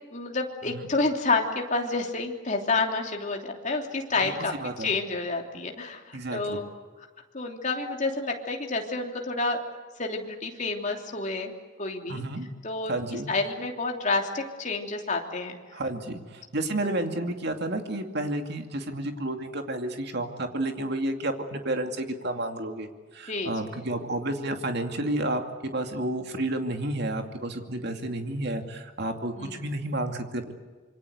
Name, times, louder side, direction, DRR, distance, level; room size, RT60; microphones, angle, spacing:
voice 1, 0.1-4.5 4.8-6.7 7.3-9.6 10.0-11.5 11.8-12.2 12.6-13.0 13.3-15.6 16.8-16.9 23.3-23.5 29.4-29.6, left 3 dB, 40° left, 2 dB, 3.1 m, -29 dB
voice 2, 4.2-4.9 6.1-6.6 12.1-12.5 12.9-13.3 15.7-30.5, right 1 dB, 55° right, 5 dB, 2.5 m, -31 dB
26.5 x 24.5 x 8.1 m, 1.4 s
head